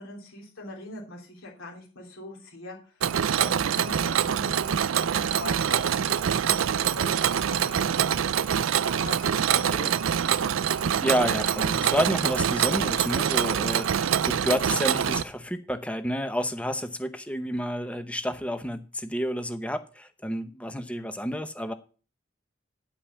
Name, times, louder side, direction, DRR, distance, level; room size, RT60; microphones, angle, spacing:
voice 1, 0.0-8.2 9.0-9.9, left 2 dB, 90° left, 3.3 m, -42 dB
Mechanisms, 3.0-15.2, right 8 dB, 85° right, 0.4 m, -25 dB
voice 2, 11.0-21.7, equal, 5° left, 0.7 m, -30 dB
10.0 x 5.4 x 7.2 m
head